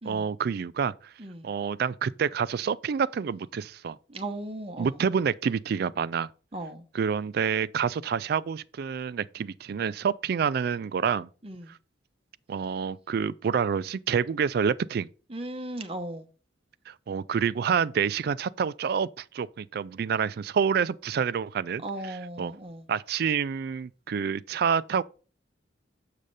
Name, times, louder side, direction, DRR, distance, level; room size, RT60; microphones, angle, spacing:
voice 1, 0.0-1.1 1.4-4.0 4.8-6.3 6.9-11.3 11.7-11.8 12.5-15.1 16.9-21.8 22.1-22.5 22.9-25.0, right 6 dB, 55° right, 0.3 m, -28 dB
voice 2, 1.2-1.5 4.1-5.0 6.5-6.8 11.4-11.7 15.3-16.3 21.8-22.9, right 1 dB, 30° right, 0.9 m, -37 dB
7.5 x 5.0 x 4.0 m
head